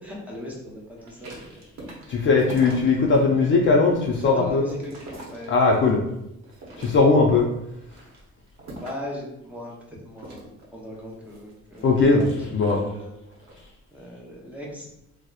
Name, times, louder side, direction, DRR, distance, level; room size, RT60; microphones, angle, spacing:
voice 1, 0.0-1.6 2.1-2.2 4.2-5.7 6.7-6.9 8.8-13.2 13.9-14.9, left 1 dB, 5° right, -4 dB, 0.7 m, -38 dB
sound 1, 1.0-3.2 3.6-6.0 6.4-7.3 7.8-9.2 10.1-12.8 13.3-13.6, right 2 dB, 60° right, 0.8 m, -43 dB
voice 2, 2.1-4.6 5.5-6.0 6.8-7.5 11.8-12.8, left 3 dB, 40° left, -1 dB, 0.4 m, -19 dB
2.8 x 2.0 x 2.3 m, 0.84 s
cardioid pair, 90°, 30 cm